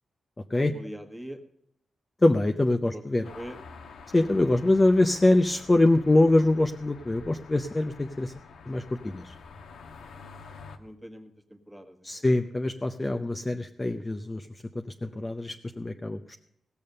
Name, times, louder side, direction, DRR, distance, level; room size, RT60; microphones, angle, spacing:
voice 1, 0.7-1.4 2.9-3.0 3.3-3.6 10.8-12.0, equal, ahead, 4 dB, 1.6 m, -42 dB
voice 2, 2.2-3.3 4.1-8.3 8.7-9.3 12.0-14.5 14.7-16.4, left 2 dB, 20° left, 6 dB, 0.6 m, -24 dB
sound 1, 3.2-10.8, left 5 dB, 90° left, 1.2 m, -48 dB
17.0 x 7.1 x 6.7 m, 0.74 s
wide cardioid pair, 130°, 0 cm